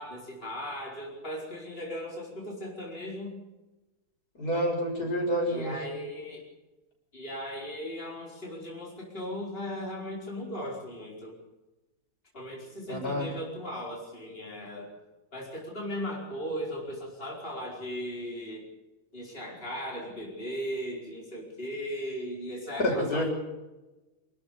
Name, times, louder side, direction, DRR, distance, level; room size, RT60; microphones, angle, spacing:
voice 1, 0.0-3.4 5.5-6.5 7.1-11.4 12.3-14.9 15.3-18.7 19.1-23.3, equal, 35° left, -2 dB, 5.1 m, -37 dB
voice 2, 4.4-5.7 12.9-13.3 22.8-23.3, equal, 80° left, 0 dB, 7.2 m, -28 dB
27.0 x 13.0 x 8.6 m, 1.1 s
omnidirectional pair, 1.6 m